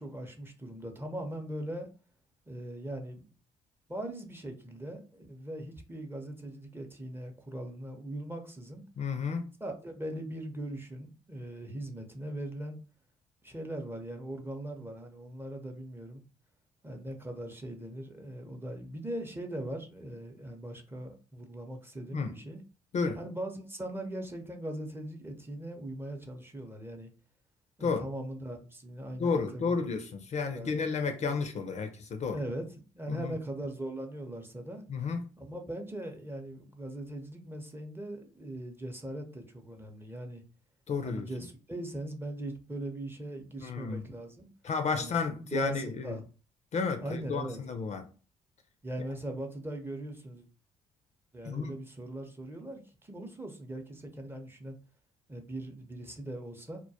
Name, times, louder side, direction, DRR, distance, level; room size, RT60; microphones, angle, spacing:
voice 1, 0.0-1.9 2.5-3.3 3.9-8.8 9.6-12.8 13.4-16.2 16.8-22.6 23.1-27.1 27.8-29.8 30.5-31.4 32.3-34.8 35.4-40.4 41.0-44.5 44.9-46.2 47.0-47.6 48.8-50.4 51.3-54.8 55.3-56.8, right 1 dB, 15° right, 0.6 m, -40 dB
voice 2, 9.0-9.5 22.1-22.3 22.9-23.2 27.8-28.0 29.2-32.4 33.1-33.3 34.9-35.3 40.9-41.3 43.6-44.0 44.6-46.2 46.7-48.1 51.4-51.7, left 5 dB, 45° left, 0.4 m, -32 dB
2.2 x 2.1 x 2.7 m
hypercardioid pair, 55°, 16 cm